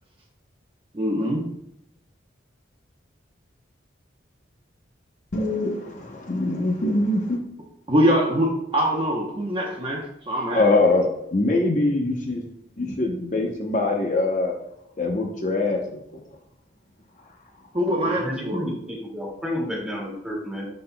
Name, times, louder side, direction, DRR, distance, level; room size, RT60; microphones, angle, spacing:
voice 1, 0.9-1.4 7.9-10.7 17.7-18.6, equal, 30° right, -2 dB, 0.8 m, -23 dB
voice 2, 5.3-7.4 10.5-12.4 12.8-14.5 15.0-16.0, left 2 dB, 40° left, 1 dB, 0.7 m, -23 dB
voice 3, 18.0-20.7, equal, 5° right, -4 dB, 2.1 m, -30 dB
11.5 x 4.1 x 2.2 m, 0.79 s
head